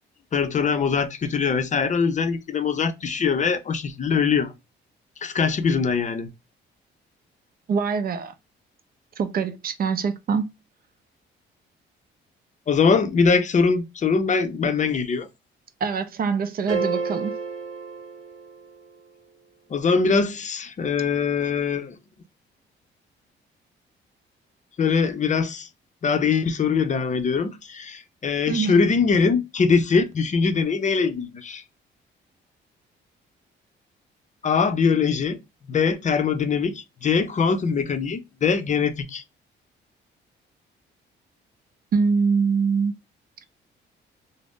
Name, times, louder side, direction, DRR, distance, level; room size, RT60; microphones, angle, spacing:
voice 1, 0.3-4.5 5.2-6.3 12.7-15.3 19.7-22.0 24.8-25.7 26.0-31.6 34.4-35.4 35.7-39.2, left 5 dB, 40° left, 0.5 m, -22 dB
voice 2, 7.7-8.3 9.2-10.5 15.8-17.3 28.5-28.9 41.9-42.9, right 5 dB, 50° right, 0.5 m, -24 dB
sound 1, 16.7-18.9, right 4 dB, 75° right, 0.9 m, -30 dB
2.5 x 2.0 x 3.6 m
cardioid pair, 90°, 20 cm